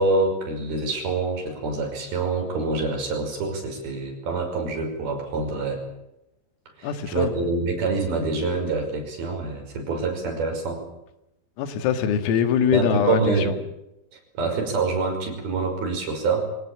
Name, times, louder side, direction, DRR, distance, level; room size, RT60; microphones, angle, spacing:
voice 1, 0.0-5.8 6.8-10.8 12.7-13.6 14.1-16.5, right 3 dB, 50° right, 3 dB, 7.2 m, -26 dB
voice 2, 6.8-7.3 11.6-13.2, left 8 dB, 85° left, 10 dB, 4.6 m, -22 dB
25.0 x 19.0 x 8.7 m, 0.88 s
omnidirectional pair, 5.8 m